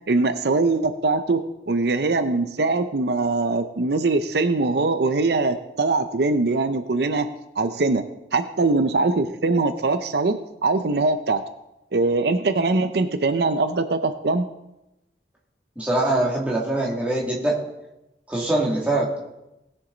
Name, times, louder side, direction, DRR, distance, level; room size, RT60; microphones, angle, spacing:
voice 1, 0.1-7.3 7.6-8.0 8.3-11.4 11.9-14.5, right 3 dB, 70° right, 10 dB, 0.6 m, -22 dB
voice 2, 15.8-17.6 18.3-19.2, right 2 dB, 10° right, -5 dB, 2.3 m, -23 dB
19.0 x 6.9 x 3.9 m, 0.93 s
head